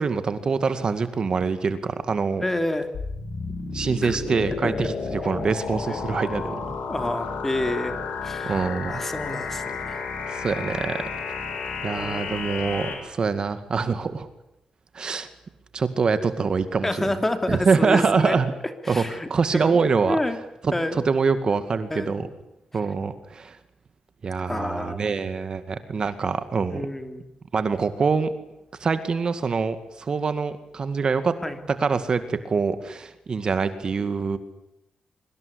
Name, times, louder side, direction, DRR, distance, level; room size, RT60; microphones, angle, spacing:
voice 1, 0.0-2.4 3.7-6.6 8.4-9.0 10.3-11.0 11.8-14.3 14.9-15.3 15.7-17.1 17.5-18.5 18.9-20.2 20.6-22.3 22.7-23.6 24.2-26.8 27.5-28.3 28.8-31.3 31.8-34.4, right 5 dB, 45° right, 11 dB, 2.1 m, -24 dB
voice 2, 2.4-2.9 4.0-4.2 4.6-4.9 5.9-6.0 6.9-8.0 8.2-8.6 8.9-10.0 12.0-12.2 16.8-18.4 18.8-19.3 19.6-20.4 20.7-21.0 21.9-22.1 24.5-25.1 26.7-27.2 31.4-31.6, left 1 dB, 15° left, 8 dB, 3.0 m, -28 dB
sound 1, 2.9-12.9, left 5 dB, 85° left, 7.6 m, -32 dB
25.0 x 24.0 x 8.5 m, 0.84 s
wide cardioid pair, 140°, 2 cm